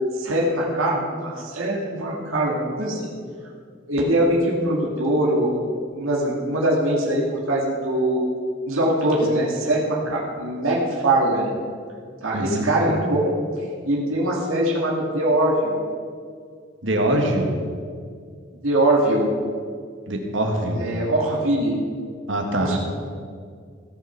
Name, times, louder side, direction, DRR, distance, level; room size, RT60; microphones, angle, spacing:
voice 1, 0.2-3.1 3.9-5.5 5.9-8.2 8.7-11.6 12.2-13.3 13.8-15.8 18.6-19.3 20.8-21.8 22.6-22.8, right 1 dB, 90° right, -3 dB, 2.1 m, -22 dB
voice 2, 12.3-12.7 16.8-17.5 20.1-20.8 22.3-22.8, right 1 dB, 65° right, 2 dB, 1.7 m, -23 dB
15.5 x 6.9 x 5.8 m, 2.1 s
head